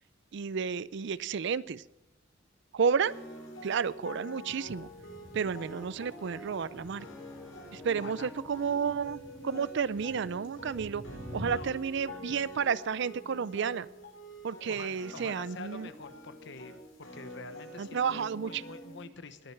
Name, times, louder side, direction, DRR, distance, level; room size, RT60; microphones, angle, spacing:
voice 1, 0.3-1.8 2.7-3.1 3.6-4.9 5.3-7.1 7.7-11.0 11.3-13.9 14.4-15.9 17.8-18.6, right 6 dB, 65° right, 19 dB, 0.5 m, -31 dB
sound 1, 3.0-19.0, equal, 85° left, 3.8 m, -46 dB
sound 2, 4.6-12.6, equal, 80° right, 2.9 m, -49 dB
sound 3, 5.3-9.7, left 1 dB, 5° left, 1.0 m, -53 dB
voice 2, 7.9-8.3 11.4-12.1 14.7-16.7 17.1-19.5, left 4 dB, 65° left, 11 dB, 1.0 m, -47 dB
20.5 x 7.8 x 5.8 m, 0.89 s
head